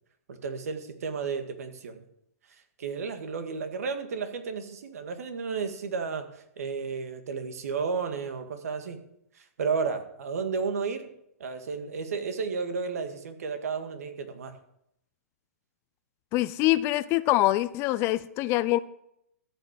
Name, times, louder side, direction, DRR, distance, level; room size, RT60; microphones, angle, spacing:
voice 1, 0.3-2.0 2.8-9.0 9.4-11.0 11.4-14.6, right 5 dB, 65° right, 1.9 m, -32 dB
voice 2, 16.3-18.8, left 17 dB, 30° left, 0.5 m, -24 dB
14.0 x 5.9 x 7.6 m
hypercardioid pair, 130°, 9 cm